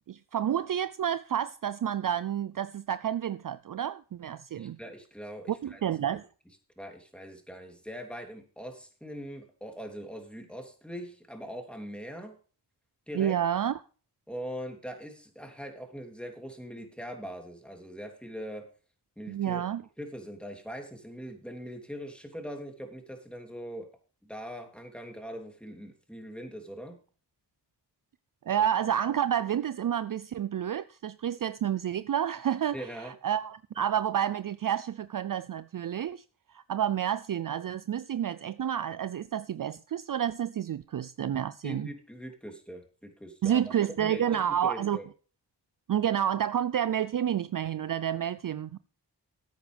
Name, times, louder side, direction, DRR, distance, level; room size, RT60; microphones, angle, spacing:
voice 1, 0.1-4.8 5.5-6.2 13.1-13.8 19.3-19.8 28.5-36.2 36.5-41.9 43.4-45.0 45.9-48.8, right 10 dB, 50° right, 0.5 m, -29 dB
voice 2, 4.5-5.8 6.8-12.4 13.1-13.3 14.3-18.7 19.2-19.6 20.0-23.9 24.2-27.0 32.7-33.1 41.6-43.6 44.0-45.0, equal, ahead, 3.0 m, -41 dB
14.5 x 8.9 x 3.4 m
cardioid pair, 50°, 42 cm